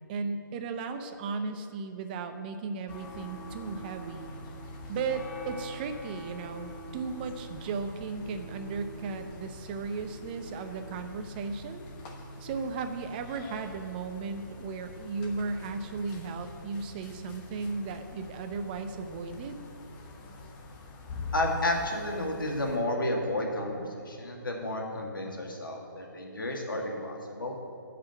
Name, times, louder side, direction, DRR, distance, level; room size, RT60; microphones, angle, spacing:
voice 1, 0.1-4.3 4.9-11.8 12.4-19.6, right 4 dB, 25° right, 7 dB, 0.7 m, -36 dB
sound 1, 2.9-22.8, left 1 dB, 20° left, 1.0 m, -44 dB
voice 2, 21.3-27.5, left 1 dB, 75° left, 0 dB, 2.0 m, -31 dB
10.0 x 5.1 x 7.8 m, 2.4 s
figure-of-eight pair, 140°, 11 cm